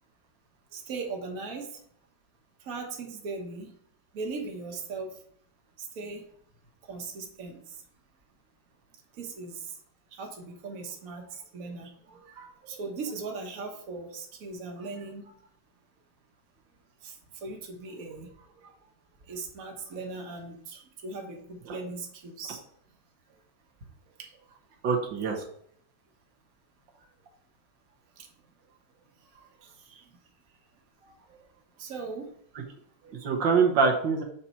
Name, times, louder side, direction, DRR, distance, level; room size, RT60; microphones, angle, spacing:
voice 1, 0.7-1.7 2.6-3.7 4.1-5.1 6.0-6.2 6.9-7.6 9.2-9.6 10.2-15.3 17.0-17.1 17.4-18.3 18.6-18.7 19.3-22.6 24.2-24.6 29.3-30.0 31.3-31.4 31.8-32.3 33.0-33.1, right 4 dB, 55° right, 2 dB, 1.6 m, -39 dB
voice 2, 24.8-25.4 33.2-34.2, right 5 dB, 85° right, 1 dB, 1.9 m, -24 dB
7.1 x 4.3 x 4.4 m, 0.63 s
omnidirectional pair, 1.9 m